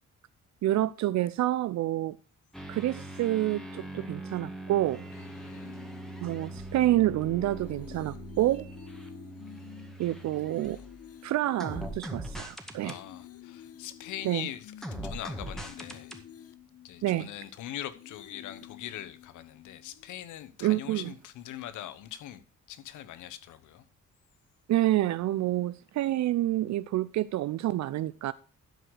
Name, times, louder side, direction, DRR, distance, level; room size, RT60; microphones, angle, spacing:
voice 1, 0.6-2.2 2.7-5.0 6.2-8.7 10.0-10.8 11.2-12.9 14.2-14.5 17.0-17.3 20.6-21.1 24.7-28.3, right 14 dB, 65° right, 0.5 m, -28 dB
sound 1, 2.5-11.1 11.6-13.0 14.8-16.2, right 1 dB, ahead, 1.9 m, -41 dB
voice 2, 5.1-5.8 12.8-14.7 15.0-16.2 16.8-22.4 22.7-23.8, left 12 dB, 85° left, 1.1 m, -42 dB
sound 2, 5.6-7.1 7.5-12.4 12.7-17.6 17.9-20.2 20.6-20.8, left 11 dB, 50° left, 0.8 m, -51 dB
12.0 x 4.8 x 6.3 m
cardioid pair, 90°, 30 cm